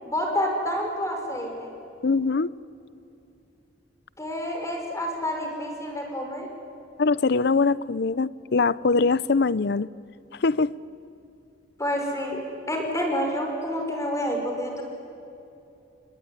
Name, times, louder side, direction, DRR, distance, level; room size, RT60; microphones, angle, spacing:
voice 1, 0.0-1.7 4.2-6.5 11.8-12.4 12.7-14.8, equal, 15° left, 2 dB, 5.3 m, -28 dB
voice 2, 2.0-2.5 7.0-9.9 10.4-10.7, left 4 dB, 65° left, 19 dB, 0.6 m, -22 dB
28.5 x 21.5 x 9.8 m, 2.7 s
head